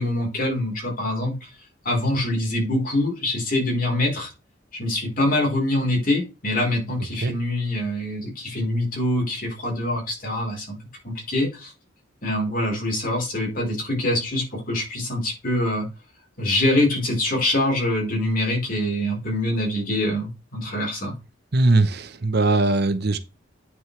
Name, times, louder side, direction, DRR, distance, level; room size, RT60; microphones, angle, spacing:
voice 1, 0.0-1.5 1.8-4.3 4.7-10.8 11.0-11.7 12.2-15.9 16.4-21.1, left 1 dB, 45° left, 4.0 m, -24 dB
voice 2, 21.5-23.2, right 2 dB, 55° right, 0.9 m, -20 dB
9.2 x 6.2 x 3.3 m
head